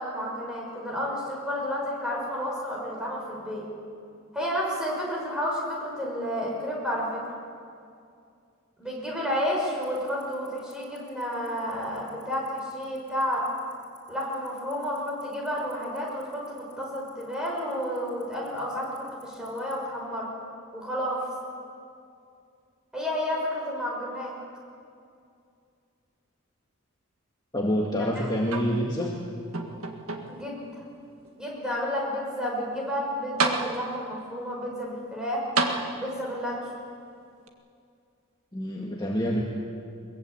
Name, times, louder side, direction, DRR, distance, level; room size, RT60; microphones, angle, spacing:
voice 1, 0.0-3.7 4.3-7.2 8.8-13.5 14.1-20.3 20.7-21.3 22.9-24.4 28.0-28.3 30.3-30.8 31.4-35.4 35.9-36.7, equal, 5° right, -3 dB, 6.2 m, -31 dB
Tick-tock, 9.8-19.7, left 10 dB, 35° left, 7.9 m, -55 dB
voice 2, 27.5-29.1 38.5-39.4, equal, 20° left, -2 dB, 2.0 m, -27 dB
sound 1, 28.5-29.1 29.5-30.5 31.3-31.4 32.9-33.0 33.4-34.2 35.6-36.4 37.5-37.6, right 3 dB, 85° right, 1.9 m, -30 dB
22.0 x 21.5 x 8.5 m, 2.4 s
head